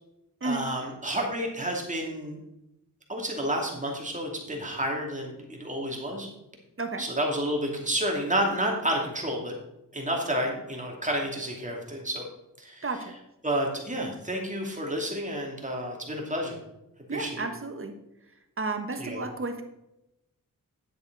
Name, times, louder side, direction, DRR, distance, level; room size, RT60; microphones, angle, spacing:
voice 1, 0.4-2.4 3.1-6.3 7.0-9.5 9.9-12.3 12.6-12.9 13.4-16.6 17.1-17.5 19.0-19.3, right 1 dB, 20° right, 0 dB, 2.6 m, -30 dB
voice 2, 12.8-13.1 17.1-17.9 18.6-19.6, right 3 dB, 40° right, 7 dB, 1.3 m, -32 dB
10.0 x 7.8 x 4.0 m, 0.89 s
cardioid pair, 75°, 34 cm